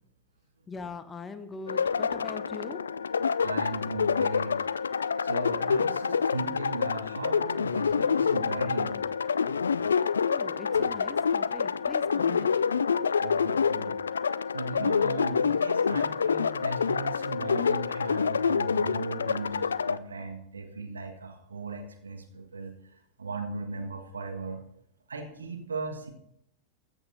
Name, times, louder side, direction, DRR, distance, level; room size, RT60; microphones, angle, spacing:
voice 1, 0.7-2.8 10.3-13.3, left 4 dB, 20° left, 12 dB, 0.8 m, -42 dB
sound 1, 1.7-20.0, left 6 dB, 70° left, 0.3 m, -27 dB
voice 2, 3.4-4.5 5.2-9.0 10.7-10.9 12.9-14.0 14.5-22.7 23.2-24.6 25.1-26.1, right 3 dB, 75° right, 5 dB, 1.6 m, -37 dB
14.5 x 7.3 x 4.1 m, 0.75 s
figure-of-eight pair, 90°, 0 cm